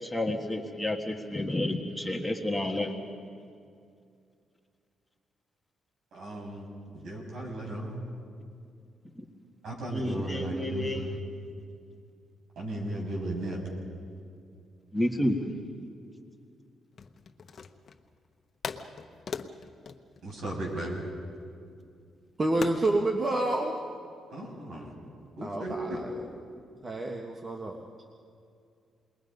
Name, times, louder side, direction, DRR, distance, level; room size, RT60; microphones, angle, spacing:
voice 1, 0.0-2.9 9.2-9.3 9.9-11.2 14.9-15.4, left 1 dB, 5° left, 1 dB, 1.7 m, -30 dB
voice 2, 6.1-6.7 6.9-8.0 9.6-11.0 12.6-13.6 20.2-21.0 24.3-24.9 25.4-26.0, right 1 dB, 75° right, -2 dB, 7.1 m, -35 dB
sound 1, 16.9-18.1 18.6-21.1 22.6-23.0, left 5 dB, 45° left, 1.1 m, -40 dB
voice 3, 22.4-23.8 25.4-26.1 26.8-27.8, right 2 dB, 35° right, 2 dB, 1.5 m, -28 dB
28.5 x 21.5 x 5.4 m, 2.4 s
cardioid pair, 105°, 0 cm